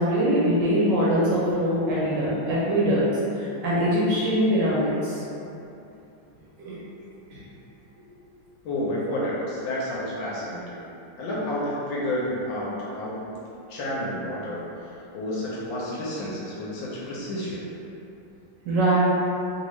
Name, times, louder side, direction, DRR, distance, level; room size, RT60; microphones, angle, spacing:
voice 1, 0.0-3.0 3.4-5.2 6.6-6.8 7.3-7.4 18.7-19.0, equal, 75° right, -8 dB, 1.1 m, -23 dB
voice 2, 8.6-10.8 11.2-13.3 13.7-14.7 15.1-17.6, left 1 dB, 75° left, -6 dB, 1.2 m, -30 dB
3.2 x 2.7 x 3.0 m, 2.8 s
omnidirectional pair, 2.4 m